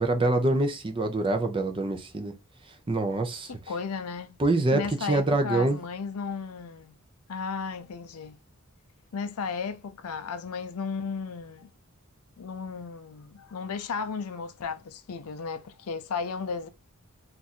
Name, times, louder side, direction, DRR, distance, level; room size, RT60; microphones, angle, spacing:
voice 1, 0.0-2.3 2.9-3.5 4.4-5.8, right 2 dB, 25° right, 0.5 m, -25 dB
voice 2, 3.5-4.4 4.7-6.9 7.3-8.4 9.1-11.7 12.4-16.7, left 5 dB, 80° left, 0.5 m, -34 dB
2.6 x 2.4 x 4.1 m
head